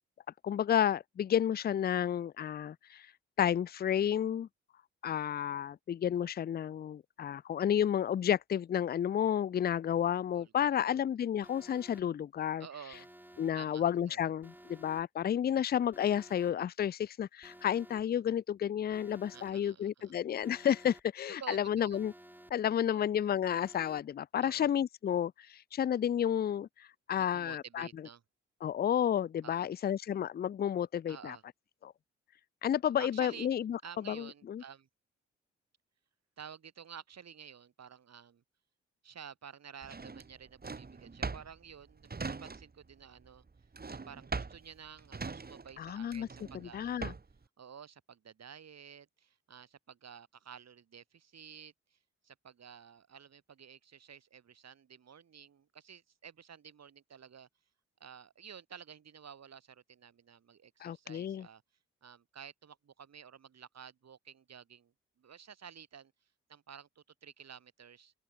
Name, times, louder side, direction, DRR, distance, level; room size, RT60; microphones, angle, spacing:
voice 1, 0.4-3.0 3.4-4.5 5.0-12.7 13.4-22.1 22.5-26.7 27.1-27.9 28.6-31.4 31.8-31.9 32.6-33.8 34.1-34.6 45.8-46.3 46.7-47.1 60.8-61.5, left 9 dB, 30° left, 0.4 m, -31 dB
voice 2, 10.3-11.0 12.6-13.1 13.5-14.2 19.3-20.2 21.4-22.0 22.9-23.1 24.4-24.7 27.1-28.2 29.4-29.9 31.1-31.4 33.0-33.5 33.8-34.9 36.4-38.4 39.0-43.4 43.9-47.1 47.6-52.0 52.2-57.5 58.0-61.6 62.0-66.1 66.5-68.1, right 7 dB, 60° right, 5.3 m, -52 dB
Alarm, 11.4-12.0 12.9-13.5 14.4-15.0 15.9-16.5 17.4-18.0 18.9-19.5 20.4-21.0 21.9-22.5 23.4-24.0, right 1 dB, 5° right, 6.1 m, -55 dB
Drawer open or close, 39.8-42.9 43.2-47.4, right 4 dB, 30° right, 2.2 m, -41 dB
open air
hypercardioid pair, 45°, 30 cm